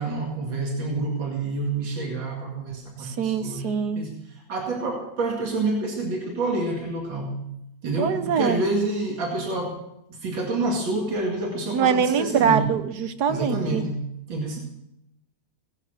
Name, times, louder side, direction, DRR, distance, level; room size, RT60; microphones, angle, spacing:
voice 1, 0.0-3.7 4.0-7.4 7.8-12.8 13.3-14.0 14.3-14.6, right 2 dB, 90° right, 1 dB, 2.9 m, -28 dB
voice 2, 3.1-4.0 8.0-8.6 11.7-13.8, right 7 dB, 65° right, 11 dB, 1.4 m, -23 dB
17.0 x 10.5 x 6.6 m, 0.81 s
omnidirectional pair, 2.0 m